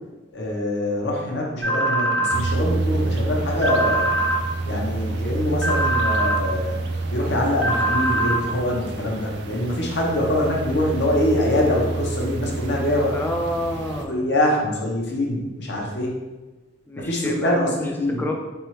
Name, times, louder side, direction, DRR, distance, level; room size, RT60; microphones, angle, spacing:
voice 1, 0.3-4.1 4.7-6.8 7.1-13.2 14.1-16.1 17.0-18.3, left 1 dB, 60° left, -2 dB, 0.9 m, -24 dB
sound 1, 1.6-2.4 3.6-4.4 5.6-6.4 7.6-8.4, right 1 dB, 75° right, 1.2 m, -22 dB
sound 2, 2.3-14.1, right 2 dB, 60° right, 0.4 m, -28 dB
voice 2, 13.1-14.3 16.9-17.7 18.2-18.3, left 1 dB, 10° left, 2 dB, 0.4 m, -28 dB
4.2 x 3.4 x 3.0 m, 1.2 s
head